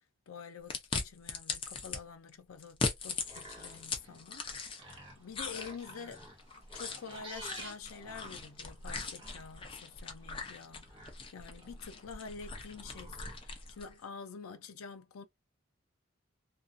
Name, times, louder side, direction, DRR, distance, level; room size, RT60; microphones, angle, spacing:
voice 1, 0.3-6.2 6.7-15.2, left 5 dB, 85° left, 0.5 m, -48 dB
sound 1, 0.7-2.0 2.6-5.0 5.3-13.9, left 4 dB, 25° left, 0.4 m, -40 dB
sound 2, 3.0-13.8, right 1 dB, 25° right, 0.9 m, -53 dB
2.4 x 2.2 x 2.5 m
head